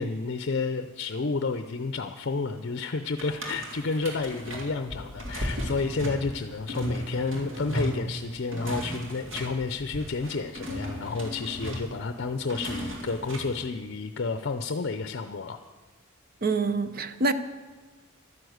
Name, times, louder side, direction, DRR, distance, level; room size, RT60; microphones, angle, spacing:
voice 1, 0.0-15.6, left 4 dB, 55° left, 9 dB, 0.6 m, -31 dB
sound 1, 3.2-13.6, equal, 65° right, 2.6 m, -35 dB
voice 2, 16.4-17.3, right 3 dB, 45° right, 11 dB, 0.8 m, -26 dB
12.5 x 9.7 x 7.9 m, 1.4 s
head